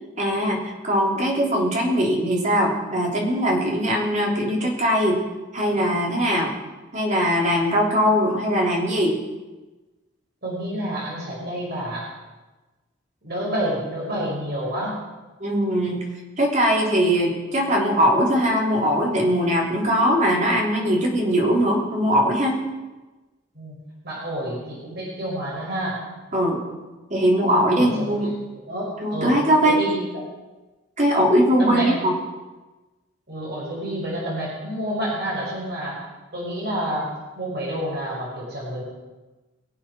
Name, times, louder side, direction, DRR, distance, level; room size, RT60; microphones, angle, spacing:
voice 1, 0.2-5.2 5.5-6.5 6.9-9.2 15.4-16.0 16.4-22.6 26.3-26.6 27.1-28.3 29.0-29.8 31.0-32.1, equal, 35° right, -1 dB, 3.3 m, -21 dB
voice 2, 10.4-12.1 13.2-15.0 23.5-23.8 24.0-26.0 27.7-28.3 28.7-29.4 29.7-30.3 31.6-31.9 33.3-36.0 36.3-37.1 37.4-38.8, equal, 50° right, -4 dB, 5.7 m, -29 dB
23.0 x 7.7 x 6.1 m, 1.2 s
head